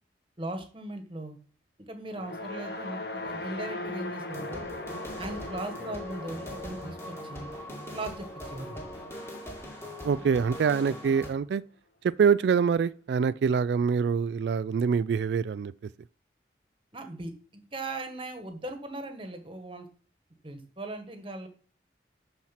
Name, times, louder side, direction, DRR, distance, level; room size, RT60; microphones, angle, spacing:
voice 1, 0.4-1.4 1.9-4.7 5.2-7.5 7.9-8.8 16.9-19.9 20.4-21.5, right 2 dB, 30° right, 1.3 m, -38 dB
sound 1, 2.1-10.4, left 2 dB, 65° left, 1.1 m, -40 dB
sound 2, 4.3-11.3, left 1 dB, 15° left, 2.1 m, -41 dB
voice 2, 10.0-11.6 12.2-15.7, right 6 dB, 70° right, 0.3 m, -25 dB
12.0 x 4.3 x 5.8 m
head